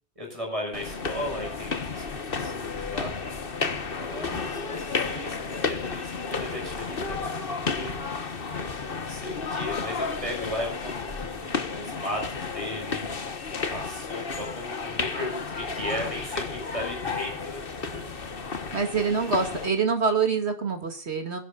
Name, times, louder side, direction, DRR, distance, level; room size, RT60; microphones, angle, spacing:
voice 1, 0.1-3.1 3.9-8.0 8.9-13.1 13.7-18.1, left 1 dB, 30° right, 1 dB, 6.8 m, -36 dB
sound 1, 0.7-19.7, left 4 dB, 55° left, 1.5 m, -32 dB
voice 2, 18.7-21.4, right 5 dB, 70° right, 6 dB, 2.8 m, -25 dB
26.5 x 11.5 x 2.5 m, 0.35 s
omnidirectional pair, 1.2 m